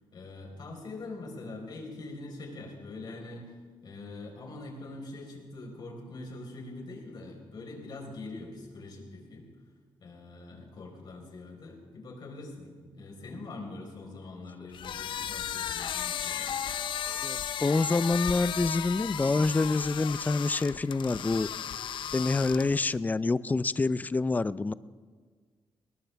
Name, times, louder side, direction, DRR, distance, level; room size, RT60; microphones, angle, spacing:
voice 1, 0.1-3.5 3.8-9.5 10.0-16.5, left 2 dB, 55° left, 0 dB, 4.5 m, -43 dB
sound 1, 14.7-22.9, left 9 dB, 70° left, 0.6 m, -35 dB
voice 2, 17.2-21.5 22.1-24.7, left 3 dB, 20° left, 17 dB, 0.4 m, -27 dB
21.0 x 19.0 x 3.4 m, 1.5 s
cardioid pair, 115°, 9 cm